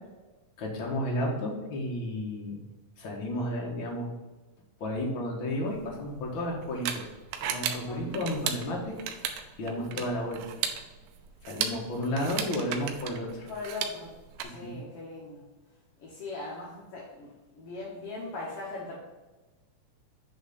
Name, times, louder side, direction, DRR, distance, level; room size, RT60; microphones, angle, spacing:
voice 1, 0.6-2.6 3.0-4.1 4.8-7.0 7.4-9.0 9.6-10.4 11.5-13.5 14.6-14.8, left 1 dB, 50° left, -2 dB, 1.5 m, -32 dB
sound 1, 5.7-14.4, right 8 dB, 85° right, 2.5 m, -36 dB
voice 2, 9.7-10.4 12.0-12.1 13.5-14.2 14.4-15.5 16.0-19.0, left 3 dB, 65° left, -5 dB, 1.4 m, -40 dB
8.5 x 3.7 x 5.4 m, 1.2 s
omnidirectional pair, 4.2 m